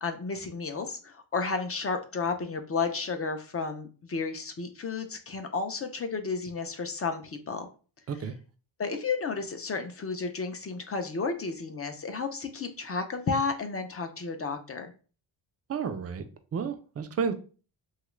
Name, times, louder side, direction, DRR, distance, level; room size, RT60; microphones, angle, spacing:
voice 1, 0.0-7.7 8.8-14.9, left 4 dB, 30° left, 6 dB, 0.4 m, -32 dB
voice 2, 15.7-16.2 16.5-17.3, right 6 dB, 35° right, 9 dB, 0.4 m, -31 dB
2.9 x 2.4 x 3.1 m, 0.36 s
cardioid pair, 95°, 49 cm